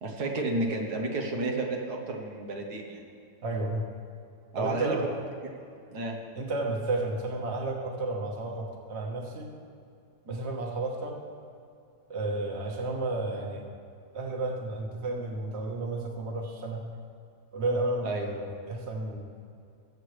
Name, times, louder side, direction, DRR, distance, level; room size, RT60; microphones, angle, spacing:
voice 1, 0.0-3.0 4.5-5.0 5.9-6.2 10.3-10.4 18.0-18.3, right 2 dB, 85° right, 1 dB, 1.8 m, -31 dB
voice 2, 3.4-3.8 4.6-5.1 6.3-9.5 10.3-11.2 12.1-13.6 14.1-16.8 17.5-19.2, right 2 dB, 45° right, 0 dB, 1.6 m, -32 dB
21.0 x 7.8 x 3.3 m, 2.5 s
omnidirectional pair, 1.6 m